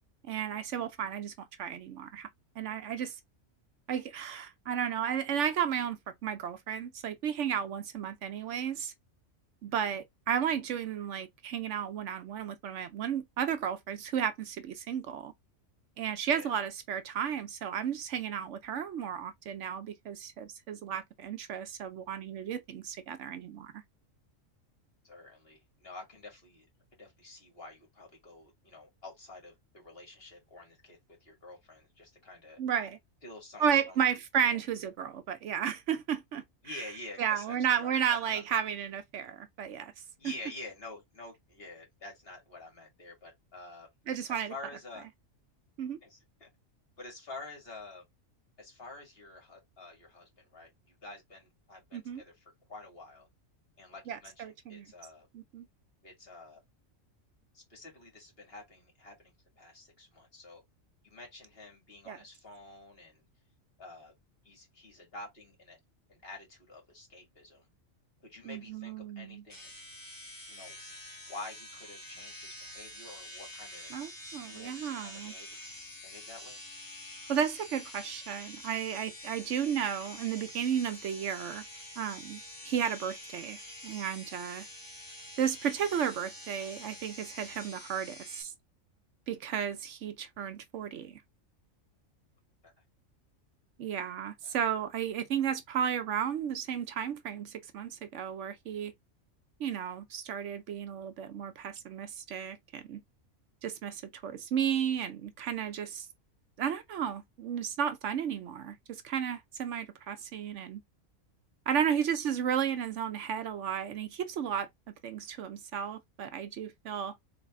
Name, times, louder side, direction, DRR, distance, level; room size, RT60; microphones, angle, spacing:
voice 1, 0.2-2.3 2.6-3.2 3.9-8.9 9.6-15.3 16.0-23.7 32.6-33.0 33.6-36.8 37.2-39.9 40.2-40.3 44.1-44.5 45.8-46.0 51.9-52.2 54.1-54.9 55.3-55.7 62.1-62.2 68.4-69.4 73.9-75.3 77.3-81.6 82.0-84.7 85.4-88.5 89.3-91.2 93.8-98.9 99.6-103.0 103.6-106.1 106.6-110.8 111.7-117.2, right 8 dB, 70° right, 0.9 m, -33 dB
voice 2, 25.0-26.7 27.0-32.6 33.2-34.0 34.5-34.6 36.6-38.6 40.2-43.9 44.3-45.1 46.0-46.5 47.0-48.0 48.6-53.3 53.8-55.3 56.0-56.6 57.5-60.6 61.0-63.2 63.8-64.1 64.4-65.8 66.1-67.7 68.2-69.7 70.5-70.8 71.3-73.9 74.4-75.5 76.0-76.6 92.6-92.7 94.4-94.6 111.9-112.1, left 2 dB, 45° left, 2.4 m, -48 dB
sound 1, 69.5-88.4, left 1 dB, 15° left, 1.5 m, -47 dB
4.0 x 3.3 x 3.5 m
omnidirectional pair, 1.4 m